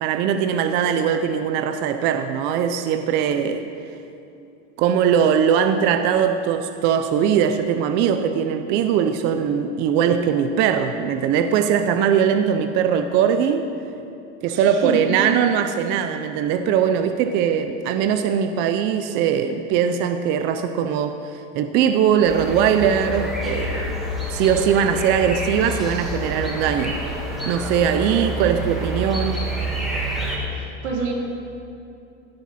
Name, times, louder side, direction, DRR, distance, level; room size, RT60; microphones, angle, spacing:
voice 1, 0.0-3.6 4.8-13.7 14.4-24.0 24.3-27.0 27.5-29.4, right 8 dB, 30° right, 8 dB, 0.5 m, -20 dB
voice 2, 14.5-15.0 30.5-31.1, right 4 dB, 80° right, -2 dB, 3.4 m, -28 dB
sound 1, 22.2-30.4, equal, ahead, 2.3 m, -28 dB
16.0 x 10.0 x 4.2 m, 2.7 s
supercardioid pair, 145°, 35 cm